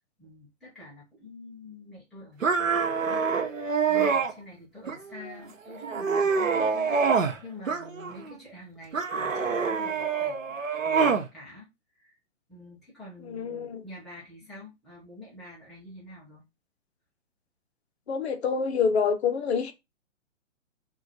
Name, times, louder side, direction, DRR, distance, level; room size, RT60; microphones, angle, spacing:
voice 1, 0.2-11.7 12.0-12.2 12.5-16.4, left 1 dB, ahead, 0.4 m, -47 dB
sound 1, 2.4-4.3 4.9-5.4 5.8-7.4 7.7-8.4 8.9-11.3, right 5 dB, 90° right, 0.9 m, -26 dB
voice 2, 13.2-13.8 18.1-19.7, left 6 dB, 55° left, 0.9 m, -27 dB
3.8 x 2.5 x 4.2 m
figure-of-eight pair, 135°, 38 cm